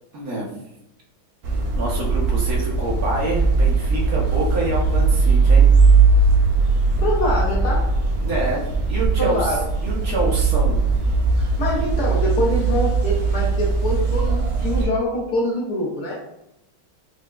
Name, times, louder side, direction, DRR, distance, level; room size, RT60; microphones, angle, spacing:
voice 1, 0.1-0.5 1.7-5.7 6.2-6.3 8.2-8.6 8.9-9.5 9.8-10.8, right 1 dB, 60° right, -3 dB, 0.9 m, -27 dB
sound 1, 1.4-14.9, right 4 dB, 90° right, 0.8 m, -19 dB
voice 2, 7.0-7.9 9.2-9.6 11.4-16.2, left 1 dB, 65° left, -3 dB, 1.0 m, -24 dB
4.8 x 2.0 x 2.2 m, 0.83 s
omnidirectional pair, 2.3 m